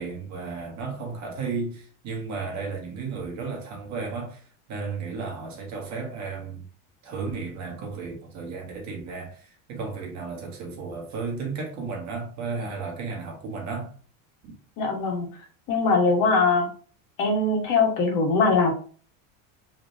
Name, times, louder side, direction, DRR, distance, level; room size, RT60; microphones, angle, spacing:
voice 1, 0.0-6.6 7.0-13.9 14.4-14.5, right 4 dB, 40° right, 1.7 m, -34 dB
voice 2, 14.8-15.3 15.7-16.7 17.2-18.7, left 3 dB, 45° left, 1.6 m, -21 dB
4.9 x 3.4 x 2.8 m
cardioid pair, 155°, 42 cm